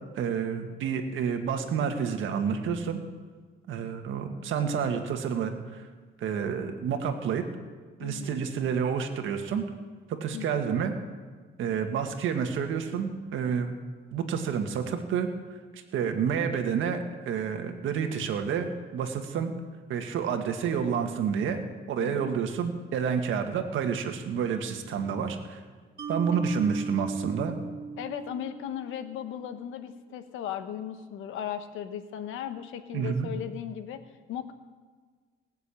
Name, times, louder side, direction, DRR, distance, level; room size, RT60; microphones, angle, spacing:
voice 1, 0.2-3.0 3.7-5.9 6.2-7.4 8.0-9.6 10.2-10.9 11.6-13.8 14.1-15.3 15.7-17.0 17.3-19.5 19.9-25.6 26.1-27.6 32.9-33.3, right 7 dB, 80° right, 5 dB, 1.8 m, -29 dB
voice 2, 8.0-8.4 10.3-10.7 22.0-22.2 28.0-34.5, left 10 dB, 90° left, 10 dB, 1.1 m, -37 dB
Mallet percussion, 26.0-29.3, right 5 dB, 50° right, 2.6 m, -37 dB
19.5 x 6.9 x 8.5 m, 1.5 s
cardioid pair, 90°, 20 cm